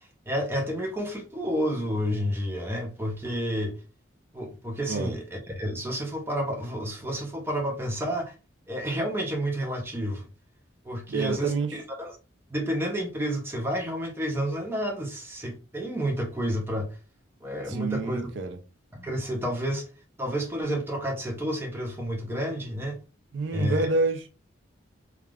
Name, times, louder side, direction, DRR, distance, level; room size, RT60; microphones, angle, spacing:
voice 1, 0.3-3.8 4.3-8.3 8.7-10.3 10.8-12.2 12.5-17.0 17.4-18.3 18.9-19.8 20.2-23.0 23.5-23.9, equal, 10° right, 0.6 m, -30 dB
voice 2, 11.1-11.7 17.7-18.6 23.3-24.3, right 3 dB, 70° right, 0.4 m, -27 dB
3.3 x 2.4 x 2.3 m
head